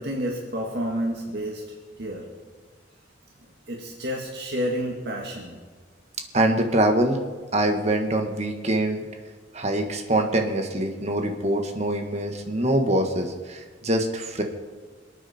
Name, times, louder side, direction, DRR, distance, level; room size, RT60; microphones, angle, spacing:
voice 1, 0.0-1.6 2.0-2.2 3.7-5.6, equal, 65° right, -1 dB, 2.0 m, -29 dB
voice 2, 6.3-7.2 7.5-9.0 9.5-14.4, right 1 dB, 40° right, 4 dB, 1.7 m, -24 dB
27.5 x 9.2 x 4.4 m, 1.4 s
head